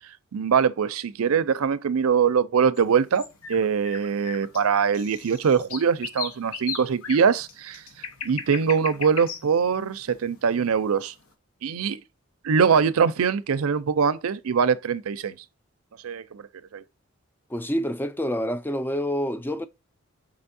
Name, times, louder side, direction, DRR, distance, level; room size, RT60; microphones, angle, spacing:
voice 1, 0.3-3.2 3.5-7.8 8.2-11.1 11.6-12.0 12.4-15.4 16.0-16.4 16.7-16.8, right 6 dB, 90° right, 0.5 m, -23 dB
sound 1, 2.7-11.0, left 6 dB, 90° left, 1.0 m, -37 dB
voice 2, 17.5-19.7, equal, 10° left, 0.4 m, -27 dB
5.1 x 3.4 x 2.6 m
head